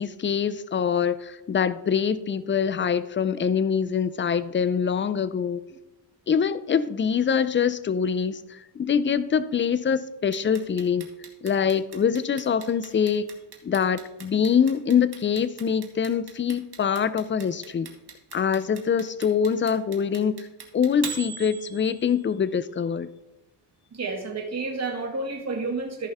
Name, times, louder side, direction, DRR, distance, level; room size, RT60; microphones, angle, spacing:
voice 1, 0.0-5.6 6.3-11.1 11.4-13.3 13.6-17.9 18.3-20.4 20.7-23.1, left 7 dB, 25° left, 15 dB, 0.4 m, -24 dB
Clock, 10.3-22.3, right 6 dB, 50° right, 1.7 m, -40 dB
voice 2, 23.9-26.1, right 3 dB, 35° right, -1 dB, 2.2 m, -30 dB
14.0 x 5.5 x 3.5 m, 1.0 s
cardioid pair, 85°, 47 cm